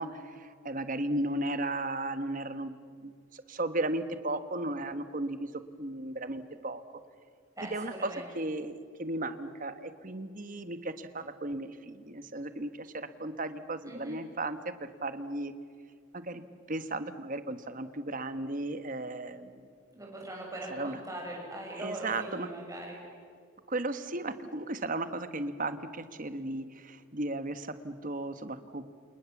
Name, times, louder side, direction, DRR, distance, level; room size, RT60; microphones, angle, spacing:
voice 1, 0.0-2.8 3.0-5.5 5.8-6.8 7.7-15.5 16.1-16.4 16.7-19.7 20.7-21.0 21.8-22.5 23.7-28.8, right 2 dB, 40° right, 11 dB, 1.3 m, -35 dB
voice 2, 7.6-8.3 13.8-14.2 19.9-23.0, right 1 dB, 15° right, -1 dB, 6.8 m, -41 dB
29.5 x 27.5 x 7.2 m, 2.2 s
head